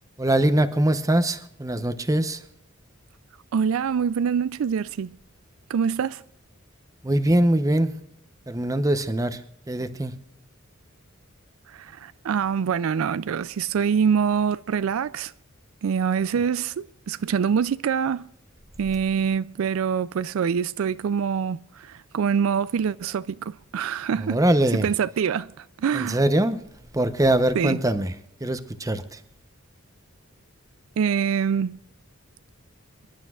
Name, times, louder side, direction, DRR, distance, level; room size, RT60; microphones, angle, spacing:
voice 1, 0.2-2.4 7.0-7.9 8.5-9.4 9.7-10.1 24.2-24.9 25.9-26.6 26.9-28.1 28.4-29.2, right 1 dB, 15° right, 0.7 m, -22 dB
voice 2, 3.5-5.1 5.7-6.2 11.7-15.3 15.8-18.3 18.8-24.4 24.7-26.2 27.5-27.8 31.0-31.8, right 7 dB, 75° right, 0.4 m, -25 dB
26.0 x 11.5 x 2.4 m
head